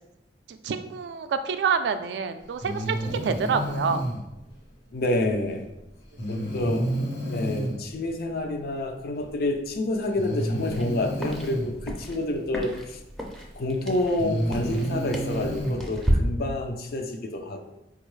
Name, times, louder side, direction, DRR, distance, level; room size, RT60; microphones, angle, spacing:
voice 1, 0.5-4.0, right 6 dB, 75° right, 10 dB, 0.3 m, -27 dB
Breathing, 2.6-4.2 6.2-7.8 9.1-9.2 10.2-11.7 13.2-13.3 14.0-15.8, right 1 dB, 75° left, 1.1 m, -30 dB
voice 2, 4.9-5.7 6.3-6.9 7.3-13.0 13.6-17.7, left 1 dB, 55° left, 4 dB, 0.4 m, -28 dB
sound 1, 10.6-16.1, equal, ahead, 0.4 m, -33 dB
4.5 x 2.4 x 3.1 m, 0.94 s
head